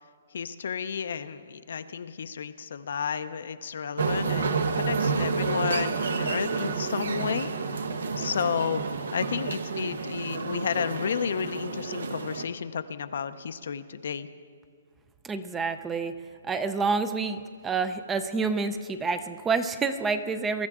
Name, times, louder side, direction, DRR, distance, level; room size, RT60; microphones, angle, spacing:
voice 1, 0.3-7.5 8.2-14.3, left 7 dB, 65° left, 11 dB, 0.6 m, -32 dB
sound 1, 4.0-12.4, right 4 dB, 80° right, 1.0 m, -30 dB
voice 2, 15.2-16.1 16.4-20.7, right 4 dB, 10° right, 11 dB, 0.5 m, -28 dB
22.5 x 12.5 x 3.7 m, 2.1 s
hypercardioid pair, 160°, 0 cm